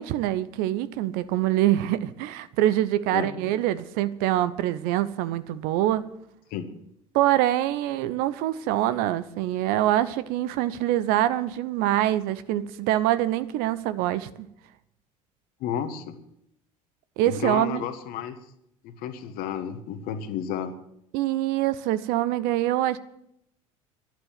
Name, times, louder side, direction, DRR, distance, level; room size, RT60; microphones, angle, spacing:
voice 1, 0.0-6.1 7.1-14.5 17.2-17.8 21.1-23.0, right 14 dB, 55° right, 15 dB, 0.8 m, -25 dB
voice 2, 3.1-3.6 6.5-6.7 15.6-16.1 17.2-18.4 18.8-20.7, left 8 dB, 55° left, 9 dB, 1.6 m, -32 dB
11.5 x 11.0 x 9.4 m, 0.78 s
figure-of-eight pair, 65°, 18 cm